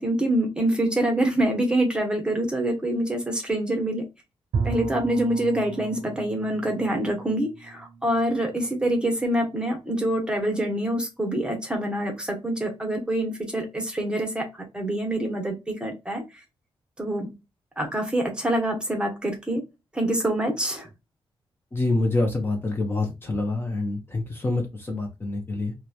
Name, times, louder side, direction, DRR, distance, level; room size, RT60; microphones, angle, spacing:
voice 1, 0.0-4.0 4.6-14.4 14.7-16.2 17.0-17.3 17.8-19.6 19.9-20.9, right 1 dB, 10° right, 2 dB, 0.8 m, -25 dB
Bowed string instrument, 4.5-9.3, right 5 dB, 85° right, 0.6 m, -35 dB
voice 2, 21.7-25.7, left 2 dB, 25° left, 2 dB, 0.6 m, -26 dB
2.9 x 2.1 x 2.3 m, 0.25 s
wide cardioid pair, 155°, 10 cm